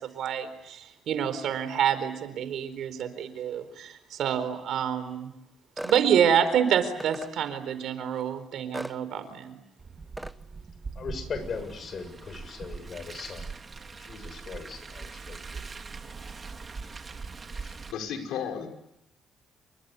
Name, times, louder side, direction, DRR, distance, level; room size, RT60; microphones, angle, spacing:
voice 1, 0.0-5.3 5.8-9.6, right 8 dB, 75° right, 11 dB, 4.3 m, -27 dB
sound 1, 5.8-6.1 7.0-7.3 8.7-9.0 10.2-10.4, right 1 dB, 5° right, 1.2 m, -36 dB
Car, 9.8-17.9, right 4 dB, 35° right, 3.1 m, -41 dB
voice 2, 10.9-13.5 14.0-15.6, left 5 dB, 50° left, 10 dB, 6.8 m, -39 dB
voice 3, 17.5-18.7, left 7 dB, 85° left, 6 dB, 6.0 m, -35 dB
28.5 x 24.5 x 8.4 m, 0.85 s
cardioid pair, 90°, 0 cm